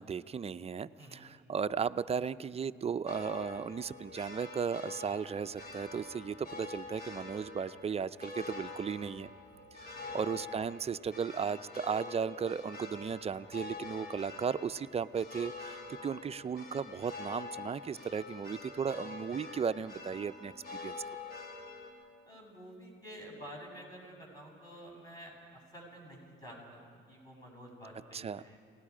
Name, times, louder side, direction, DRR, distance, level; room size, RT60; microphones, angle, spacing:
voice 1, 0.0-9.3 9.8-20.5 20.8-21.0 28.1-28.4, right 6 dB, 30° right, 14 dB, 0.5 m, -36 dB
sound 1, 3.1-21.9, left 3 dB, 50° left, 3.1 m, -46 dB
voice 2, 9.9-10.4 22.2-26.8 27.1-28.6, equal, 20° left, -2 dB, 7.9 m, -50 dB
30.0 x 18.5 x 5.0 m, 2.1 s
cardioid pair, 90°, 20 cm